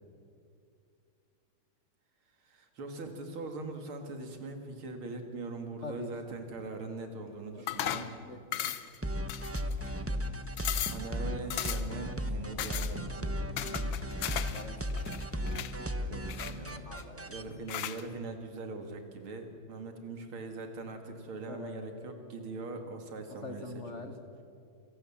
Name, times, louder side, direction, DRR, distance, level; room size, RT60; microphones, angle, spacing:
voice 1, 2.4-8.1 10.9-13.3 15.8-16.8 17.2-23.7 23.9-24.1, right 3 dB, 85° right, 5 dB, 3.1 m, -41 dB
voice 2, 7.5-8.7 10.1-10.4 13.5-15.9 16.9-17.3 21.5-21.8 23.3-24.1, left 3 dB, 40° left, 7 dB, 1.4 m, -46 dB
sound 1, 7.7-8.1 8.5-9.0 9.3-9.9 10.3-10.4 10.6-11.1 11.5-12.0 12.6-12.9 13.6-14.6 14.9-15.7 16.3-17.0 17.7-18.0, left 11 dB, 75° left, 1.6 m, -36 dB
sound 2, 9.0-17.4, equal, 15° right, 0.4 m, -35 dB
27.5 x 18.0 x 7.3 m, 2.4 s
omnidirectional pair, 2.3 m